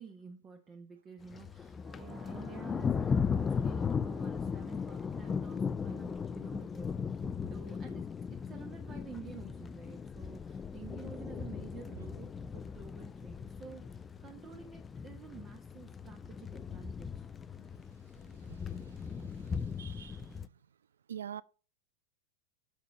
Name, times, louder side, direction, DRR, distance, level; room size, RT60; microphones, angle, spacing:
voice 1, 0.0-17.3, right 6 dB, 25° right, 1.2 m, -51 dB
Thunder, 1.2-20.5, left 6 dB, 20° left, 0.3 m, -37 dB
sound 1, 1.8-10.2 10.5-10.6, right 7 dB, 45° right, 1.8 m, -61 dB
voice 2, 18.5-20.4 21.1-21.4, right 9 dB, 65° right, 0.3 m, -47 dB
7.0 x 5.9 x 6.2 m
figure-of-eight pair, 90°, 0 cm